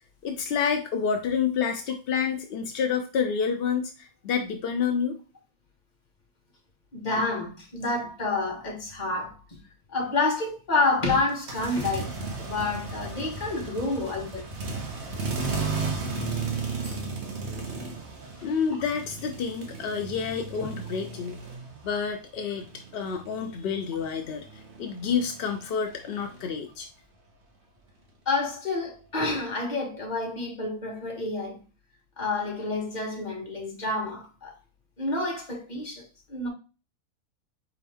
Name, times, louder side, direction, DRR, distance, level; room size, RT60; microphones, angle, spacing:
voice 1, 0.2-5.2 18.4-21.4 21.8-22.7 22.9-26.9, left 6 dB, 70° left, 0.5 m, -29 dB
voice 2, 6.9-9.3 9.9-14.5 16.8-17.0 28.3-31.6 32.2-34.5 35.0-36.0 36.3-36.5, left 3 dB, 30° left, 1.3 m, -29 dB
sound 1, 11.3-22.1 22.4-26.5, right 4 dB, 50° right, 1.2 m, -35 dB
4.3 x 3.5 x 3.4 m
omnidirectional pair, 1.6 m